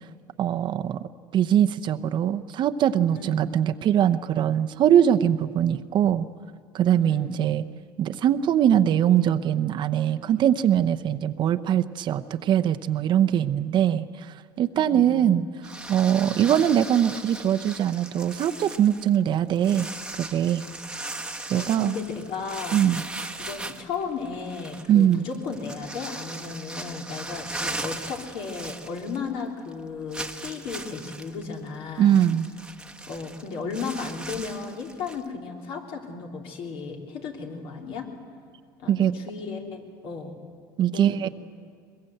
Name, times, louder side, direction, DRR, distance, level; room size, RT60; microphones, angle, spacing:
voice 1, 0.4-6.3 6.7-7.6 8.0-14.1 14.6-15.4 15.9-19.9 20.2-20.6 21.5-21.9 22.7-23.0 24.9-25.3 32.0-32.5 38.9-39.1 40.8-41.3, right 10 dB, 50° right, 9 dB, 0.8 m, -22 dB
voice 2, 3.1-3.4 7.0-7.4 14.7-15.4 16.2-16.5 21.5-22.8 23.5-32.2 33.1-38.1 38.8-40.4 40.9-41.3, left 4 dB, 65° left, 1 dB, 3.6 m, -35 dB
sound 1, 15.6-29.4 29.7-29.8 30.1-35.3, right 2 dB, 10° right, 1.2 m, -38 dB
22.0 x 21.5 x 7.9 m, 2.1 s
supercardioid pair, 105°, 10 cm